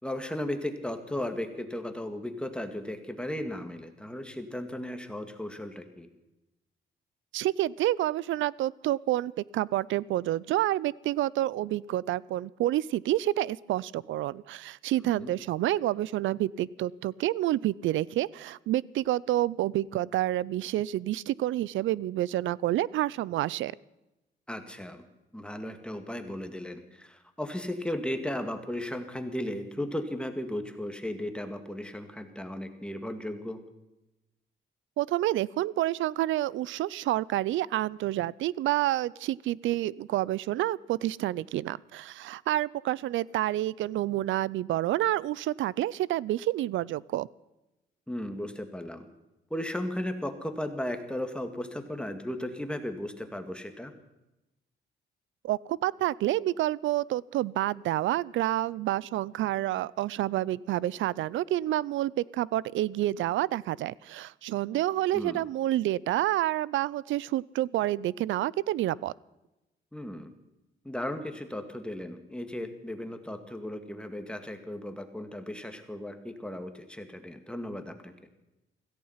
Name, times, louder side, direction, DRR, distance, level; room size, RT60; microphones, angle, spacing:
voice 1, 0.0-6.1 15.0-15.3 24.5-25.0 25.3-33.6 48.1-49.1 49.5-53.9 65.1-65.4 69.9-70.3 70.8-78.1, left 1 dB, 5° left, 7 dB, 2.0 m, -36 dB
voice 2, 7.3-23.7 35.0-47.3 55.4-69.1, right 14 dB, 75° right, 23 dB, 0.5 m, -28 dB
16.5 x 15.0 x 5.7 m, 0.96 s
cardioid pair, 90°, 20 cm